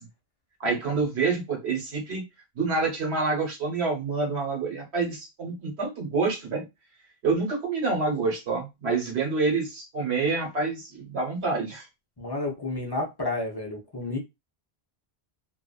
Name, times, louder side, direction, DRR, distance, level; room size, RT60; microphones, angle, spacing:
voice 1, 0.6-2.2 2.5-6.6 7.2-11.9, right 4 dB, 75° right, 1.3 m, -27 dB
voice 2, 12.2-14.2, left 2 dB, 30° left, 0.5 m, -31 dB
2.5 x 2.4 x 2.2 m
omnidirectional pair, 1.1 m